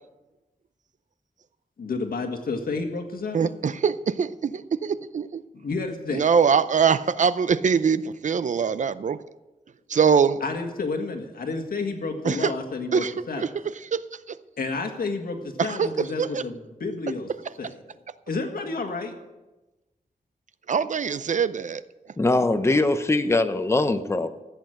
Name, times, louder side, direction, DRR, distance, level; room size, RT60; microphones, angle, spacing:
voice 1, 1.8-3.5 5.5-6.3 10.4-13.5 14.6-17.3 17.6-17.7 18.3-19.2, left 3 dB, 85° left, 5 dB, 1.7 m, -30 dB
voice 2, 3.3-5.4 6.1-9.2 9.9-10.4 12.2-12.5 12.9-13.5 13.9-14.0 14.3-14.4 15.6-16.4 20.7-21.8, right 6 dB, 55° right, 15 dB, 0.5 m, -23 dB
voice 3, 22.2-24.3, left 2 dB, 20° left, 9 dB, 0.7 m, -22 dB
15.0 x 8.3 x 6.4 m, 1.1 s
wide cardioid pair, 125°, 15 cm